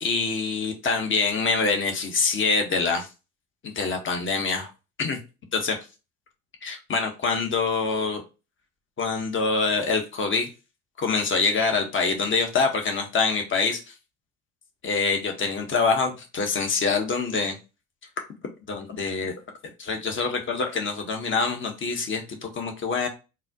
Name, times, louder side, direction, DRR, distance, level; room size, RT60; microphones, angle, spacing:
voice 1, 0.0-3.1 3.6-4.7 5.0-5.2 5.5-5.7 6.6-8.2 9.0-10.5 11.0-13.8 14.8-17.6 18.7-19.3 19.8-23.1, left 4 dB, 30° left, 3 dB, 1.1 m, -25 dB
3.9 x 2.5 x 2.8 m, 0.29 s
hypercardioid pair, 65°, 38 cm